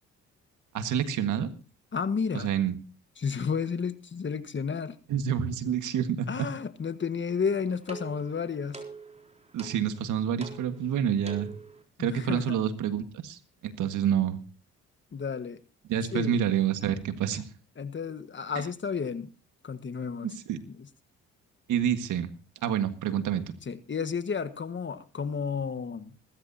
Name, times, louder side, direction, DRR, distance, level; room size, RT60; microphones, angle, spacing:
voice 1, 0.7-1.5 2.3-2.7 5.1-6.5 9.5-11.5 12.0-14.4 15.9-17.5 20.2-20.6 21.7-22.3 22.6-23.4, right 9 dB, 75° right, 9 dB, 1.7 m, -28 dB
voice 2, 1.9-2.5 3.2-5.0 6.3-8.8 12.0-12.6 13.8-13.9 15.1-15.6 16.1-16.4 17.7-19.3 19.6-20.3 20.7-20.9 23.6-26.1, left 6 dB, 40° left, 12 dB, 1.5 m, -32 dB
sound 1, 7.2-11.8, right 3 dB, 20° right, 4.0 m, -46 dB
20.5 x 13.5 x 2.8 m, 0.34 s
supercardioid pair, 60°, 31 cm